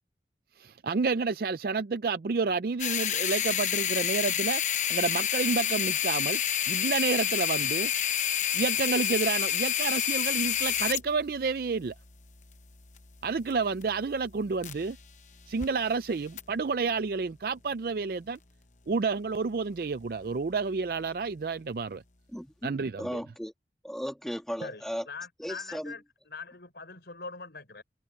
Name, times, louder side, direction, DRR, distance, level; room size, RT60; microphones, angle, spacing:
voice 1, 0.6-4.6 4.9-6.4 6.7-7.9 8.5-11.9 13.2-15.0 15.5-18.4 18.9-22.0 22.6-23.2, right 4 dB, 55° right, 0.4 m, -30 dB
sound 1, 2.8-15.1 15.4-15.7 16.4-16.5, left 10 dB, 45° left, 0.9 m, -29 dB
voice 2, 22.3-23.5 23.8-25.1 25.4-25.9, equal, ahead, 2.4 m, -36 dB
voice 3, 24.6-27.8, left 4 dB, 70° left, 4.7 m, -42 dB
head